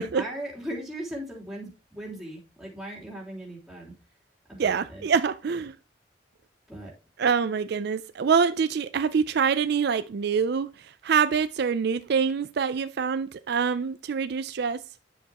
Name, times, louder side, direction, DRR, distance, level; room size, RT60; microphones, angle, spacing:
voice 1, 0.0-3.9 4.5-5.0 6.7-6.9, right 1 dB, ahead, 3.3 m, -38 dB
voice 2, 4.6-5.7 7.2-14.8, right 6 dB, 60° right, 0.4 m, -25 dB
10.0 x 7.0 x 2.9 m
head